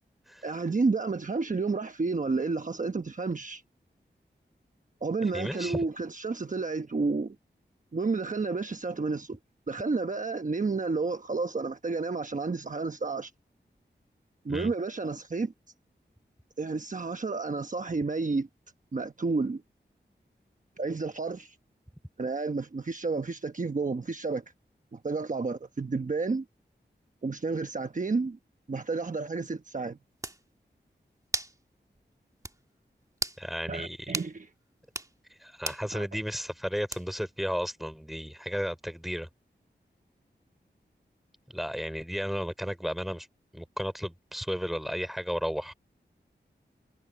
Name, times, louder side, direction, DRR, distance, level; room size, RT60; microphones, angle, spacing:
voice 1, 0.4-3.6 5.0-7.3 7.9-9.4 9.7-13.3 14.4-15.5 16.6-18.5 18.9-19.6 20.8-21.5 22.2-24.4 24.9-26.4 27.2-28.4 28.7-30.0 33.7-34.5 35.9-36.1, right 4 dB, 45° right, 1.1 m, -31 dB
voice 2, 5.3-5.8 14.5-14.7 33.4-34.1 35.4-39.3 41.5-43.3 43.5-45.7, equal, ahead, 4.2 m, -33 dB
sound 1, 29.8-29.9 30.2-30.4 31.3-31.6 31.9-32.0 32.4-32.6 33.1-33.4 34.1-34.3 34.8-35.1 35.6-35.9 36.9-37.3, right 1 dB, 20° right, 1.6 m, -34 dB
wide cardioid pair, 95°, 18 cm